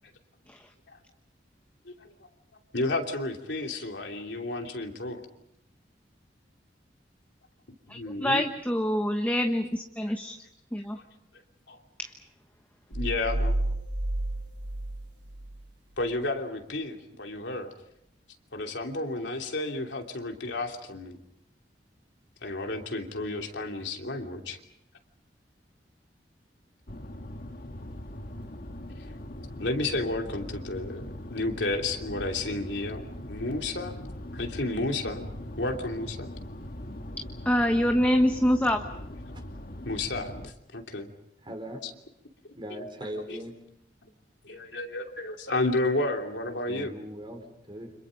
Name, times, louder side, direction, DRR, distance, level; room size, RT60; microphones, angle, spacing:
voice 1, 2.7-5.2 7.9-8.4 10.9-11.0 11.7-11.8 12.9-13.6 16.0-17.7 18.5-21.2 22.4-24.6 29.6-33.9 34.3-35.3 35.6-36.3 39.8-41.1 43.3-43.4 44.4-46.9, left 2 dB, 80° left, 3 dB, 3.0 m, -32 dB
voice 2, 7.9-10.4 10.7-11.0 12.0-12.1 37.4-38.8, equal, 10° left, 4 dB, 1.2 m, -25 dB
sound 1, 12.9-15.7, right 1 dB, 80° right, 1.2 m, -30 dB
sound 2, 26.9-40.5, left 1 dB, 55° left, 1.7 m, -41 dB
voice 3, 41.4-41.8 42.5-43.6 46.7-47.9, equal, 30° right, 5 dB, 4.2 m, -39 dB
30.0 x 26.5 x 5.3 m, 0.77 s
head